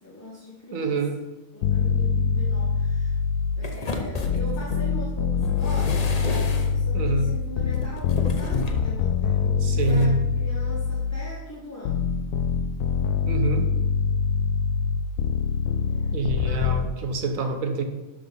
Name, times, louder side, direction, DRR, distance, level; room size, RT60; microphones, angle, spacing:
voice 1, 0.0-1.0 1.5-3.1 3.6-12.0 15.9-16.2 16.4-16.9, left 2 dB, 10° left, -6 dB, 1.5 m, -41 dB
voice 2, 0.7-1.2 6.9-7.3 9.6-10.2 13.2-13.7 16.1-17.8, right 3 dB, 75° right, 6 dB, 1.4 m, -26 dB
sound 1, 1.6-3.8 4.2-11.4 11.9-16.9, left 6 dB, 75° left, 1.0 m, -24 dB
sound 2, 3.6-4.8 5.4-6.9 7.7-8.9 9.8-10.1, left 3 dB, 35° left, 0.7 m, -32 dB
11.5 x 3.9 x 5.3 m, 1.1 s
omnidirectional pair, 1.4 m